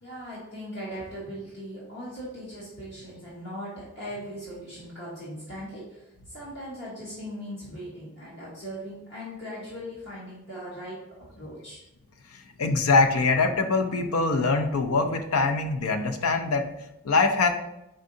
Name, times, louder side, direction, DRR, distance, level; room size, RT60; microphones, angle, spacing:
voice 1, 0.0-11.0 11.4-11.8, equal, 50° left, -7 dB, 1.1 m, -39 dB
voice 2, 12.3-17.5, left 3 dB, 85° left, 6 dB, 0.5 m, -24 dB
4.5 x 3.6 x 2.6 m, 0.92 s
head